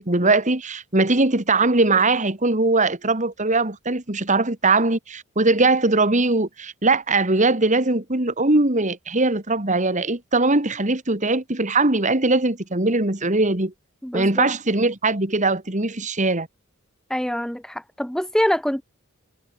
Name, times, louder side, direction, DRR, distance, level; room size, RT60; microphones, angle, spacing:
voice 1, 0.0-13.7 14.1-16.5, right 2 dB, 35° right, 2.6 m, -20 dB
voice 2, 14.0-14.5 17.1-18.8, equal, 5° left, 0.8 m, -24 dB
head